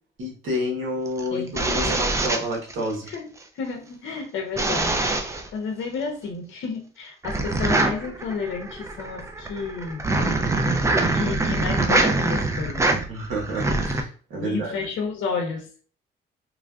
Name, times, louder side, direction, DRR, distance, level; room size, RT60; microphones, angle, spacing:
voice 1, 0.2-3.1 13.1-14.7, equal, 80° right, -2 dB, 1.3 m, -29 dB
sound 1, 1.1-3.2 4.6-5.5 7.2-14.0, right 2 dB, 15° right, 0.4 m, -24 dB
voice 2, 1.3-2.3 3.1-5.1 5.5-10.0 11.1-12.9 14.4-15.7, left 4 dB, 75° left, 2 dB, 0.7 m, -31 dB
3.1 x 2.4 x 2.3 m, 0.40 s
cardioid pair, 90°, 20 cm